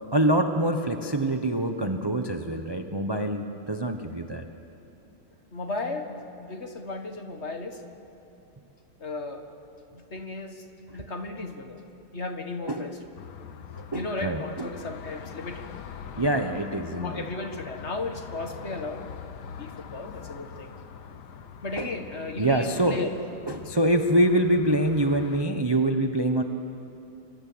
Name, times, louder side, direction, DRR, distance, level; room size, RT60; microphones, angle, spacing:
voice 1, 0.1-4.4 10.9-11.0 12.7-12.9 13.7-14.7 16.2-17.2 21.8-21.9 22.4-23.0 23.5-26.4, right 1 dB, 30° right, 6 dB, 0.4 m, -25 dB
voice 2, 5.5-7.8 9.0-9.4 9.9-10.6 10.9-11.8 12.1-13.0 13.9-15.7 17.0-19.1 19.6-20.7 21.6-23.1, left 2 dB, 35° left, 6 dB, 1.7 m, -35 dB
sound 1, 13.2-25.4, left 7 dB, 55° left, 1.5 m, -43 dB
25.5 x 24.5 x 8.6 m, 2.8 s
omnidirectional pair, 2.3 m